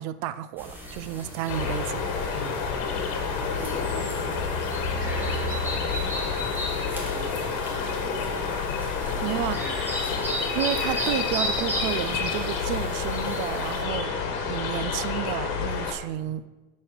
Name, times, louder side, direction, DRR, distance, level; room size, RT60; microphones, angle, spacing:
voice 1, 0.0-2.0 9.2-9.6 10.5-14.2 14.5-16.4, right 12 dB, 75° right, 0.6 m, -31 dB
sound 1, 0.6-13.8, right 1 dB, 5° right, 1.3 m, -35 dB
sound 2, 1.5-15.9, left 5 dB, 65° left, 1.4 m, -29 dB
voice 2, 2.3-3.1 3.4-4.3 4.9-8.5 9.0-10.5 16.1-16.4, left 2 dB, 35° left, 2.5 m, -41 dB
10.0 x 4.3 x 6.1 m
cardioid pair, 165°, 34 cm